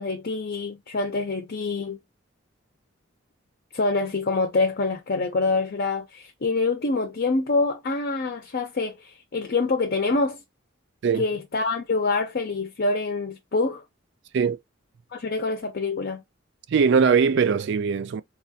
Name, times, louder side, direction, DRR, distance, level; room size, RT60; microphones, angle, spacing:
voice 1, 0.0-2.0 3.7-10.4 11.2-13.8 15.1-16.2, left 3 dB, 55° left, 0.6 m, -26 dB
voice 2, 16.7-18.2, right 6 dB, 60° right, 0.4 m, -20 dB
4.1 x 2.3 x 2.7 m
head